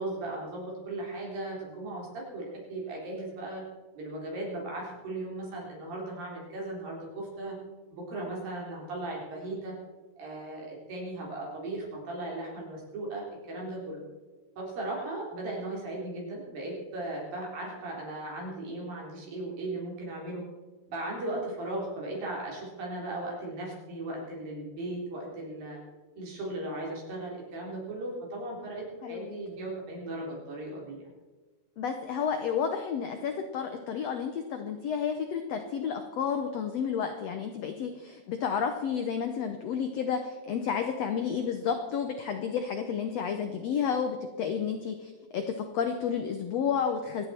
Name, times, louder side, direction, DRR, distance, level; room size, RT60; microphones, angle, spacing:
voice 1, 0.0-3.6 3.9-7.6 7.9-9.8 10.2-14.0 14.6-20.4 20.9-25.8 26.2-31.1, right 2 dB, 70° right, -3 dB, 5.6 m, -37 dB
voice 2, 29.0-29.4 31.8-47.3, left 7 dB, 90° left, 6 dB, 1.4 m, -31 dB
26.0 x 9.2 x 4.4 m, 1.3 s
omnidirectional pair, 4.3 m